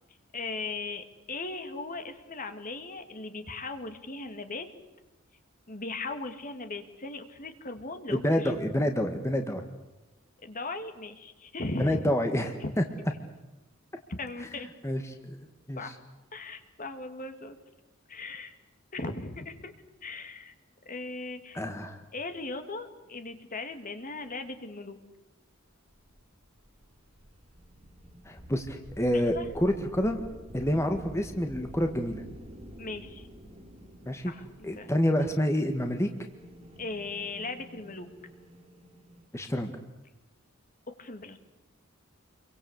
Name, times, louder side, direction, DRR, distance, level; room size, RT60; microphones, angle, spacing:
voice 1, 0.3-4.7 5.7-8.6 10.4-12.0 12.6-12.7 14.2-14.7 15.8-15.9 16.3-17.6 18.1-18.5 18.9-19.7 20.0-20.5 20.9-21.6 22.1-25.0 29.3-29.5 32.8-33.3 34.3-34.9 36.8-38.1 40.9-41.4, left 3 dB, 40° left, 8 dB, 2.4 m, -38 dB
voice 2, 8.1-9.6 11.8-12.5 12.8-12.9 14.8-15.9 21.5-22.0 28.3-30.2 30.5-32.2 34.0-34.3 34.6-36.1 39.3-39.7, equal, 15° left, 5 dB, 1.8 m, -28 dB
sound 1, 25.9-39.3, equal, 30° right, 4.3 m, -49 dB
28.0 x 23.5 x 8.3 m, 1.0 s
head